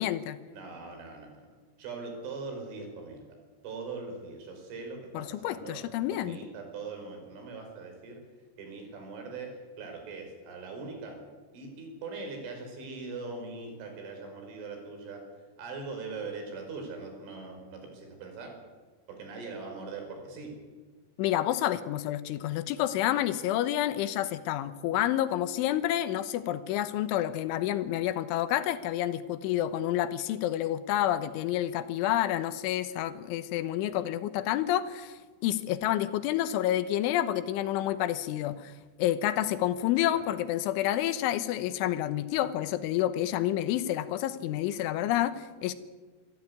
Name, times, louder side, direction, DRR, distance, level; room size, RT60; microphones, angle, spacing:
voice 1, 0.0-0.4 5.1-6.4 21.2-38.7 39.0-45.7, left 12 dB, 85° left, 12 dB, 3.5 m, -29 dB
voice 2, 0.5-1.4 1.8-3.2 3.6-5.8 6.1-8.2 8.6-11.2 11.5-15.2 15.6-18.6 19.1-20.5 34.0-34.1 39.4-39.6 40.0-40.3, right 4 dB, 90° right, 3 dB, 7.3 m, -41 dB
26.0 x 14.0 x 9.6 m, 1.4 s
omnidirectional pair, 5.4 m